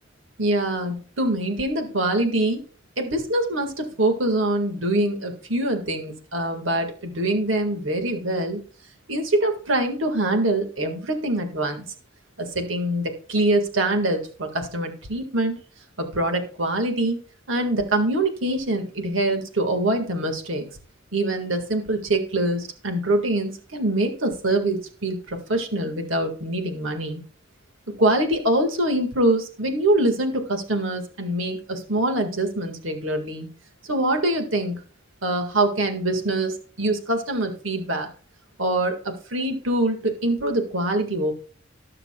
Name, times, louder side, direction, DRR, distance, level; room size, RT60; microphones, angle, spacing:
voice 1, 0.4-2.6 3.0-8.6 9.1-11.8 12.4-15.6 16.0-17.2 17.5-20.7 21.1-27.2 27.9-33.5 33.9-34.8 35.2-38.1 38.6-41.3, right 1 dB, 85° right, 5 dB, 1.9 m, -24 dB
19.0 x 6.8 x 2.3 m, 0.40 s
head